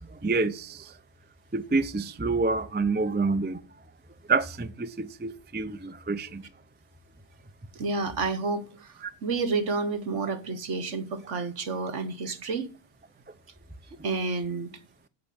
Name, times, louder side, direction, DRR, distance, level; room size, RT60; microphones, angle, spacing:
voice 1, 0.0-1.0 1.5-3.6 4.3-6.5 9.0-9.1, right 3 dB, 15° right, 0.3 m, -28 dB
voice 2, 7.7-12.7 14.0-14.7, right 3 dB, 55° right, 1.5 m, -30 dB
16.0 x 6.0 x 8.6 m
omnidirectional pair, 1.5 m